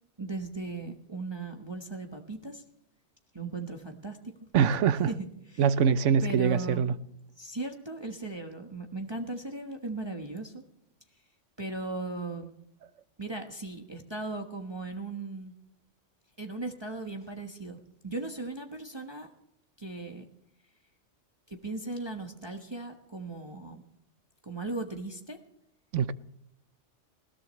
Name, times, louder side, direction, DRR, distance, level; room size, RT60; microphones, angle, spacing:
voice 1, 0.2-2.6 3.3-4.3 5.1-5.7 6.2-6.8 7.4-10.6 11.6-12.5 13.2-15.5 16.4-19.3 19.8-20.2 21.5-23.8 24.4-25.4, right 2 dB, 20° right, 1.3 m, -37 dB
voice 2, 4.5-5.1 5.6-6.9 25.9-26.1, right 7 dB, 80° right, 1.0 m, -24 dB
20.0 x 17.5 x 3.2 m
omnidirectional pair, 1.3 m